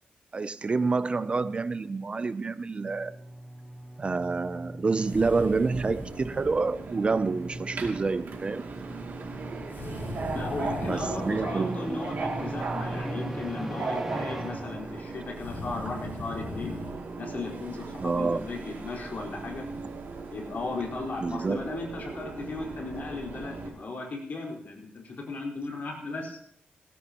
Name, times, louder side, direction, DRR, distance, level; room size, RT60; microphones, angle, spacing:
voice 1, 0.3-3.1 4.0-8.6 10.8-12.0 18.0-18.4 21.2-21.7, right 4 dB, 30° right, 14 dB, 0.4 m, -28 dB
sound 1, 2.7-15.3, right 1 dB, 10° right, 1.0 m, -40 dB
Subway metro underground, 4.9-23.7, right 4 dB, 65° right, 2.5 m, -38 dB
sound 2, 5.0-6.5 9.7-11.5 15.3-17.0, left 3 dB, 90° left, 7.0 m, -40 dB
voice 2, 10.3-16.8 17.1-19.6 20.3-26.4, left 3 dB, 55° left, -2 dB, 4.3 m, -36 dB
20.0 x 17.0 x 2.9 m, 0.69 s
wide cardioid pair, 150°, 3 cm